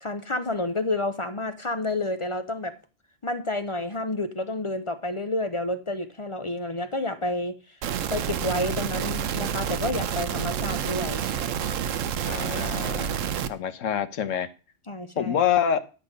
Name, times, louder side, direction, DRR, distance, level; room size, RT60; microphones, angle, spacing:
voice 1, 0.0-2.8 3.2-7.8 8.1-11.3 14.9-15.4, left 2 dB, 35° left, 0.5 m, -30 dB
sound 1, 7.8-13.5, right 8 dB, 90° right, 1.1 m, -29 dB
voice 2, 12.3-13.1 13.5-14.5 15.2-15.8, left 9 dB, 85° left, 1.2 m, -26 dB
10.0 x 7.6 x 5.2 m
omnidirectional pair, 1.3 m